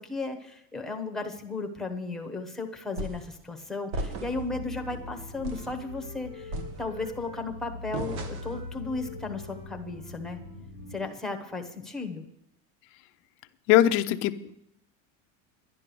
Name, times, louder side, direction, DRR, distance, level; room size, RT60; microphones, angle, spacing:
voice 1, 0.0-10.4 10.9-12.2, left 3 dB, ahead, 3 dB, 0.8 m, -35 dB
sound 1, 3.0-3.3 3.9-4.5 4.9-5.1 5.4-5.8 6.5-7.2 7.9-8.6, right 2 dB, 90° right, 1.9 m, -36 dB
sound 2, 4.2-11.0, left 2 dB, 60° right, 6.1 m, -42 dB
Wind instrument woodwind instrument, 4.5-7.4 7.8-11.7, left 2 dB, 45° right, 6.5 m, -50 dB
voice 2, 13.7-14.5, left 13 dB, 35° left, 10 dB, 0.5 m, -21 dB
11.0 x 10.5 x 6.8 m, 0.78 s
cardioid pair, 175°, 41 cm